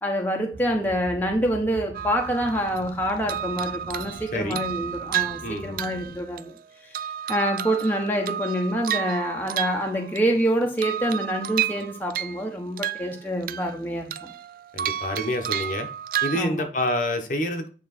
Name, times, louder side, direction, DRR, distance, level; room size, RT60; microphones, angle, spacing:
voice 1, 0.0-6.5 6.8-7.0 7.3-14.3 16.3-16.6, equal, 10° left, 1.1 m, -26 dB
sound 1, 0.5-6.2, right 1 dB, 75° right, 1.2 m, -43 dB
sound 2, 1.9-2.9 3.3-6.6 6.9-10.4 10.8-12.4 12.8-13.8 14.1-16.4, right 10 dB, 50° right, 0.3 m, -31 dB
voice 2, 5.4-5.8 14.7-15.9 16.2-17.7, left 1 dB, 45° left, 1.1 m, -27 dB
9.3 x 3.3 x 4.2 m
head